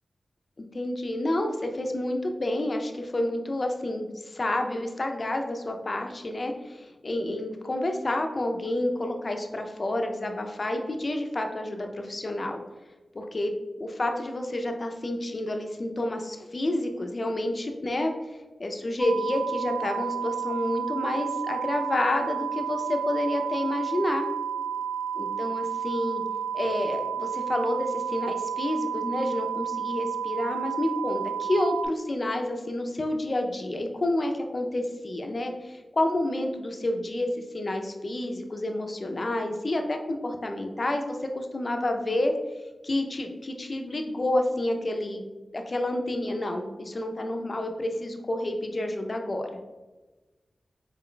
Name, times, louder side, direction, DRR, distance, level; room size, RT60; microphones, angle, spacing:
voice 1, 0.6-12.6 13.1-13.5 13.8-18.1 18.6-24.3 25.2-26.2 26.5-37.3 37.5-42.3 42.8-45.2 45.5-49.5, left 1 dB, 40° left, 4 dB, 0.4 m, -29 dB
sound 1, 19.0-31.9, right 8 dB, 35° right, 0.5 m, -31 dB
4.5 x 2.2 x 3.7 m, 1.2 s
wide cardioid pair, 120°, 0 cm